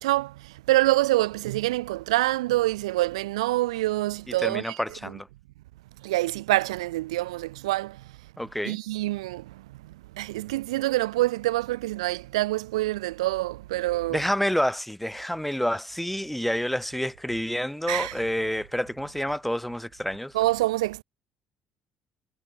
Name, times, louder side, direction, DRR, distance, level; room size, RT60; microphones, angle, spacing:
voice 1, 0.0-4.8 6.0-8.0 8.6-14.2 17.9-18.1 20.3-21.0, right 17 dB, 75° right, 1.6 m, -26 dB
voice 2, 4.4-5.3 8.4-8.8 14.1-20.3, equal, 5° left, 1.2 m, -28 dB
figure-of-eight pair, 50°, 3 cm